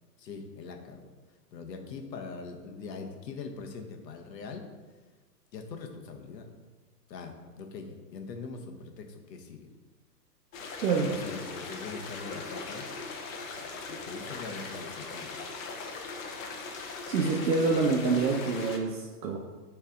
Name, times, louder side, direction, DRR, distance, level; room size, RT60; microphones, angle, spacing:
voice 1, 0.2-1.1 1.5-4.6 5.5-6.5 7.1-9.7 11.0-12.9 13.6-15.3 17.4-17.7, left 4 dB, 75° left, 3 dB, 1.2 m, -42 dB
sound 1, 10.5-18.8, left 4 dB, 55° left, 1.0 m, -40 dB
voice 2, 17.1-19.4, right 4 dB, 70° right, -1 dB, 0.9 m, -26 dB
5.8 x 3.4 x 5.0 m, 1.3 s
hypercardioid pair, 155°, 49 cm